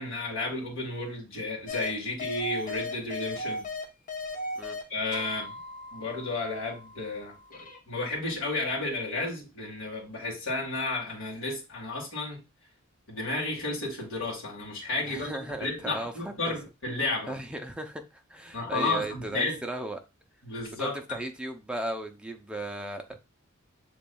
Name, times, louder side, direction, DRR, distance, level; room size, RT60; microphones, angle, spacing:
voice 1, 0.0-3.7 4.9-5.5 5.9-12.4 13.1-17.4 18.5-19.6 20.4-21.0, left 2 dB, 65° left, 1.8 m, -32 dB
sound 1, 1.7-1.9 2.2-4.8 5.1-7.8, left 2 dB, 40° left, 0.8 m, -37 dB
voice 2, 15.1-16.5 17.3-20.0 20.8-23.1, right 1 dB, 5° right, 0.5 m, -36 dB
6.7 x 2.9 x 2.3 m
head